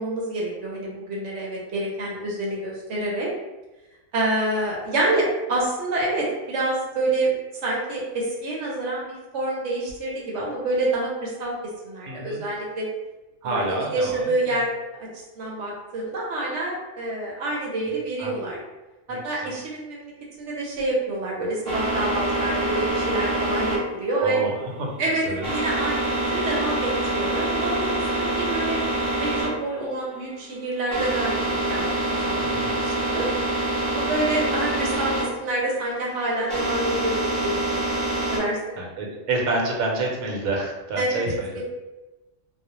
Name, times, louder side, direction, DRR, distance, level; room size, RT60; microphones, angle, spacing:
voice 1, 0.0-3.3 4.1-11.5 11.8-12.9 13.4-15.1 15.4-18.6 19.1-20.1 20.4-24.4 25.0-27.8 28.1-28.8 29.2-33.3 33.8-37.9 38.3-38.8 41.0-41.6, right 2 dB, 65° right, -3 dB, 0.8 m, -27 dB
voice 2, 12.1-12.4 13.4-14.6 18.2-18.3 19.1-19.5 24.2-24.5 24.8-25.4 32.4-32.8 38.8-41.6, right 2 dB, 85° right, -1 dB, 1.1 m, -28 dB
sound 1, 21.6-38.4, right 1 dB, 30° right, 0.6 m, -26 dB
2.4 x 2.0 x 2.7 m, 1.1 s
omnidirectional pair, 1.5 m